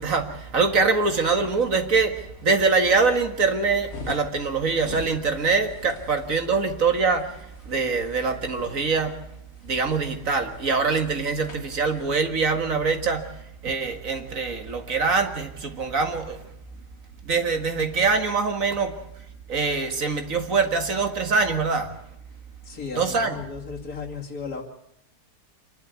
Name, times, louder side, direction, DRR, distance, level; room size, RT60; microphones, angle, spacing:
voice 1, 0.0-9.2 9.6-16.4 17.2-19.0 19.5-21.9 23.0-23.4, right 4 dB, 55° right, 2.2 m, -24 dB
sound 1, 3.3-12.1, left 3 dB, 45° left, 2.2 m, -44 dB
voice 2, 22.6-24.6, left 5 dB, 60° left, 2.9 m, -35 dB
26.0 x 12.0 x 9.4 m
omnidirectional pair, 1.7 m